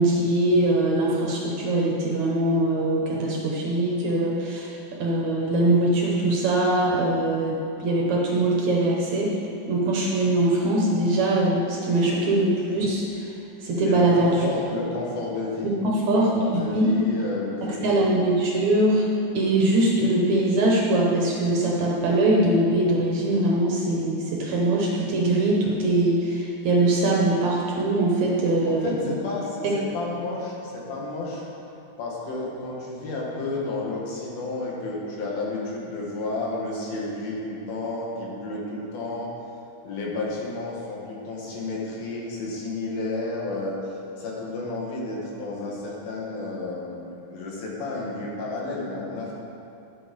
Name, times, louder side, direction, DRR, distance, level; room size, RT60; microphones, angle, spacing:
voice 1, 0.0-9.3 9.7-13.1 13.6-14.5 15.6-16.9 17.6-19.1 19.3-28.9, right 1 dB, 60° right, -3 dB, 2.2 m, -22 dB
voice 2, 13.9-17.9 28.6-31.5 32.0-39.3 39.8-43.8 44.2-49.3, left 2 dB, 75° left, -4 dB, 3.5 m, -31 dB
11.5 x 8.4 x 5.3 m, 2.7 s
omnidirectional pair, 4.2 m